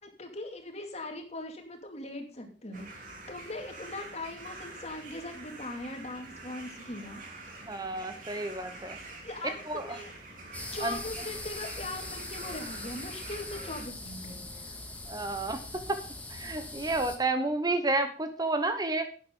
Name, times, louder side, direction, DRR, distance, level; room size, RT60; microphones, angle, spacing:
voice 1, 0.0-7.2 7.6-7.8 8.3-8.6 9.2-10.1 10.4-14.8, left 2 dB, 35° left, 4 dB, 2.4 m, -41 dB
sound 1, 2.7-13.8, right 2 dB, 50° right, 3.5 m, -46 dB
voice 2, 7.6-9.0 9.7-9.9 10.8-11.0 15.1-16.0 16.3-19.1, right 2 dB, 20° right, 8 dB, 1.0 m, -31 dB
sound 2, 10.5-17.2, left 2 dB, 10° left, 1.8 m, -41 dB
12.0 x 9.2 x 3.8 m, 0.39 s
head